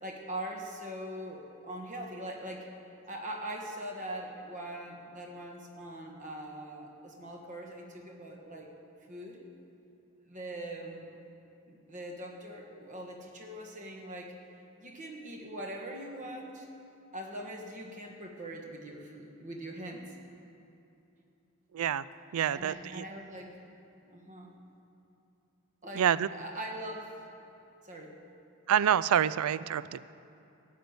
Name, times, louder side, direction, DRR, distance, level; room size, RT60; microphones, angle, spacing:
voice 1, 0.0-2.7 3.0-8.7 9.1-9.5 10.2-11.1 11.7-14.4 14.8-16.7 17.1-20.1 22.5-23.7 24.0-24.5 25.8-26.0 26.3-27.2 27.8-28.2, right 1 dB, 35° right, 1 dB, 1.5 m, -42 dB
voice 2, 21.7-22.0 22.3-23.0 25.9-26.3 28.7-30.0, right 9 dB, 80° right, 17 dB, 0.4 m, -27 dB
14.0 x 6.7 x 9.5 m, 2.8 s
head